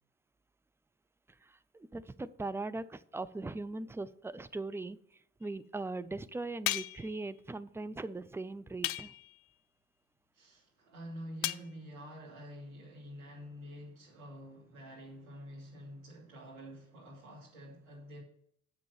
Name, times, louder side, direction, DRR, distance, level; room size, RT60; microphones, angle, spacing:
voice 1, 1.7-5.0 5.4-9.1, right 2 dB, 5° right, 0.4 m, -39 dB
sound 1, 6.7-7.1 8.8-9.4 11.4-11.7, left 16 dB, 70° left, 0.5 m, -35 dB
voice 2, 10.3-18.2, equal, 80° right, 2.7 m, -48 dB
7.6 x 6.1 x 7.3 m
figure-of-eight pair, 40°, 40 cm